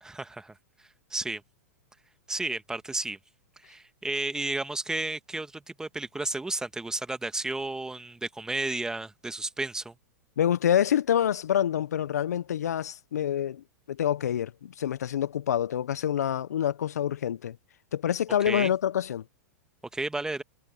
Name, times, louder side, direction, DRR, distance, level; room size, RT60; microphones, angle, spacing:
voice 1, 0.0-0.5 1.1-1.4 2.3-3.2 3.6-9.9 18.4-18.7 19.9-20.4, right 2 dB, 5° right, 1.6 m, -32 dB
voice 2, 10.4-17.6 17.9-19.2, left 10 dB, 75° left, 0.9 m, -27 dB
hypercardioid pair, 105°, 9 cm